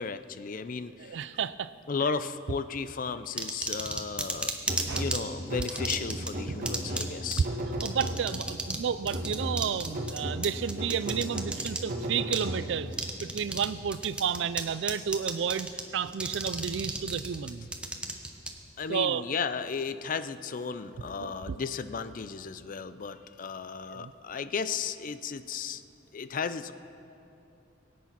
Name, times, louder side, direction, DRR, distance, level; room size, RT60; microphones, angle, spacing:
voice 1, 0.0-1.4 1.9-4.6 4.8-7.5 18.8-25.8 26.1-26.7, left 5 dB, 45° left, 12 dB, 0.5 m, -34 dB
voice 2, 1.0-1.7 4.9-5.0 6.5-6.6 6.8-6.9 7.8-12.9 13.2-15.7 15.9-17.7 18.9-19.2 21.2-21.6 23.9-24.1, right 7 dB, 65° right, 15 dB, 0.4 m, -31 dB
sound 1, 3.4-5.2 5.6-6.3 6.7-7.0 7.3-7.4 7.8-8.8 9.1-11.8 12.3-12.4 12.9-13.7 13.9-14.6 14.9-15.8 16.1-18.5, right 2 dB, 5° right, 0.9 m, -32 dB
sound 2, 4.7-8.5 9.1-13.0, right 1 dB, 45° right, 1.4 m, -36 dB
21.5 x 8.5 x 6.0 m, 2.9 s
head